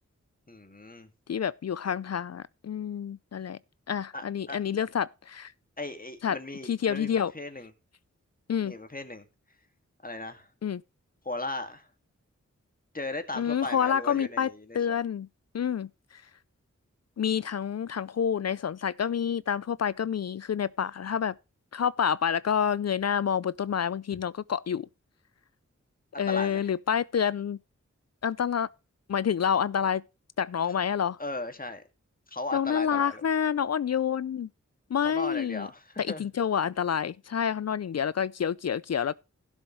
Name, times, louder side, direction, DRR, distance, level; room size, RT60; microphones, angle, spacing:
voice 1, 0.5-1.1 4.1-4.9 5.8-7.7 8.6-9.3 10.0-10.5 11.2-11.9 12.9-15.0 26.1-26.7 31.2-31.8 32.3-33.2 35.0-36.3, left 2 dB, 30° left, 2.1 m, -37 dB
voice 2, 1.3-3.6 3.9-5.5 6.2-6.4 6.7-7.3 8.5-8.7 10.6-10.8 13.3-15.3 15.5-16.2 17.2-21.4 21.7-24.9 26.2-27.6 28.2-28.7 29.1-30.0 30.4-31.2 32.5-34.5 34.9-35.7 36.0-39.1, left 8 dB, 60° left, 0.4 m, -28 dB
16.0 x 7.2 x 3.1 m
cardioid pair, 45°, 30 cm